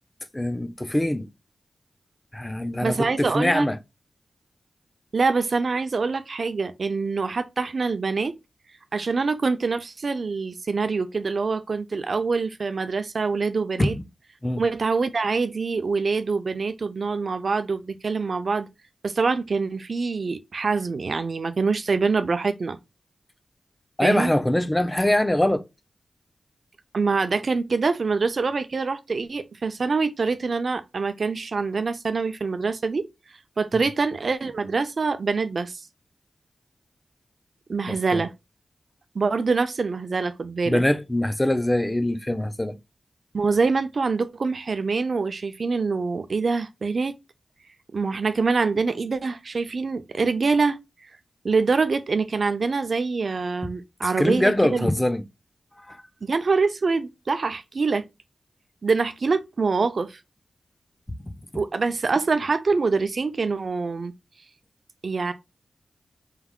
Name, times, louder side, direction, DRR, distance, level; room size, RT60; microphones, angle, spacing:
voice 1, 0.3-1.3 2.3-3.8 13.8-14.0 14.4-14.6 24.0-25.7 33.7-33.8 37.9-38.2 40.7-42.8 54.0-55.2 55.9-56.0, left 1 dB, 15° left, 0.7 m, -23 dB
voice 2, 2.8-3.7 5.1-8.3 8.9-13.9 14.6-18.7 19.0-22.8 24.0-24.3 26.9-33.1 33.6-35.8 37.7-38.3 39.1-40.8 43.3-47.1 47.9-50.8 51.4-54.9 56.2-58.0 58.8-60.2 61.5-64.1 65.0-65.3, right 4 dB, 65° right, 0.5 m, -25 dB
4.7 x 3.5 x 2.3 m
cardioid pair, 50°, 0 cm